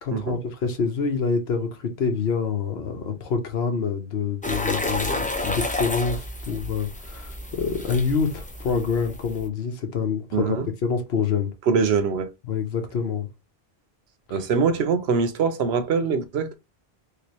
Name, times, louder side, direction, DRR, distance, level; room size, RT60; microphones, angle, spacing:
voice 1, 0.0-11.5 12.5-13.3, left 5 dB, 80° left, 1.1 m, -26 dB
sound 1, 4.4-9.5, left 2 dB, 10° left, 0.4 m, -30 dB
voice 2, 10.3-10.7 11.7-12.3 14.3-16.5, right 5 dB, 85° right, 0.9 m, -23 dB
3.4 x 2.9 x 2.9 m
omnidirectional pair, 1.0 m